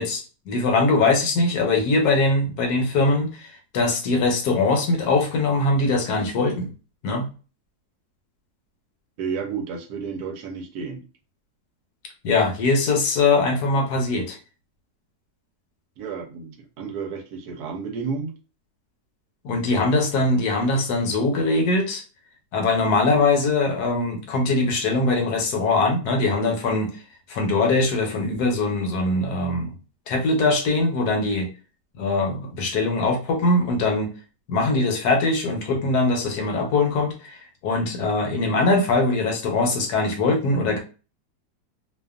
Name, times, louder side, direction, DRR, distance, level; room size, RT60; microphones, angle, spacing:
voice 1, 0.0-6.7 7.0-7.3 12.2-14.4 19.4-22.0 22.5-26.9 27.3-29.7 30.1-31.5 32.0-34.1 34.5-40.8, left 3 dB, 70° left, 3 dB, 1.2 m, -22 dB
voice 2, 9.2-11.0 16.0-18.3, right 5 dB, 70° right, 4 dB, 1.1 m, -31 dB
2.8 x 2.3 x 2.4 m, 0.34 s
omnidirectional pair, 1.9 m